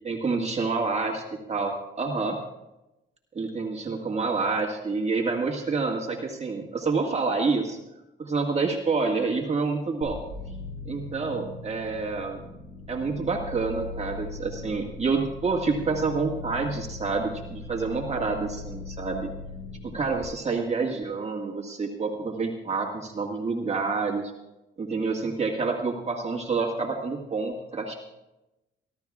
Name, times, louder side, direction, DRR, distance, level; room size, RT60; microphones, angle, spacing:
voice 1, 0.0-2.4 3.3-7.8 8.2-10.2 10.8-12.4 12.9-19.3 19.8-24.2 24.8-27.9, right 4 dB, 35° right, 0 dB, 1.8 m, -28 dB
sound 1, 10.0-20.2, left 3 dB, 60° left, 5.9 m, -39 dB
27.0 x 12.0 x 2.4 m, 0.96 s
cardioid pair, 90°, 20 cm